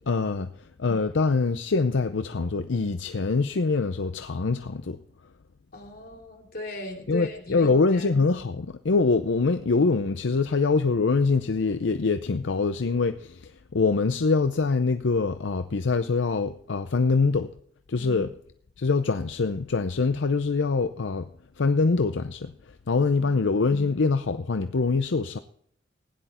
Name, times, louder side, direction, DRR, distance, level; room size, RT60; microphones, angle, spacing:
voice 1, 0.1-0.5 0.8-5.0 7.1-17.5 17.9-18.3 18.8-21.3 21.6-22.5 22.9-25.4, left 4 dB, 75° left, 0.6 m, -24 dB
voice 2, 5.7-8.1 17.9-18.3, left 1 dB, 50° left, 2.9 m, -39 dB
16.5 x 10.5 x 4.3 m
head